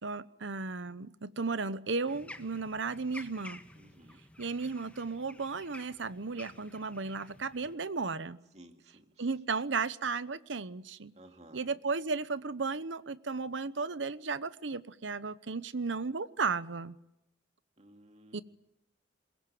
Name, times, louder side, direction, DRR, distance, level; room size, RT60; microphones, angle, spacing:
voice 1, 0.0-3.6 4.4-8.4 9.2-11.1 11.5-17.0 18.3-18.4, right 4 dB, 75° right, 0.9 m, -34 dB
sound 1, 2.1-7.8, left 1 dB, 5° left, 1.5 m, -51 dB
voice 2, 3.8-4.2 8.5-9.1 11.1-11.7 17.8-18.4, right 1 dB, 35° right, 2.3 m, -56 dB
22.5 x 22.0 x 9.3 m
head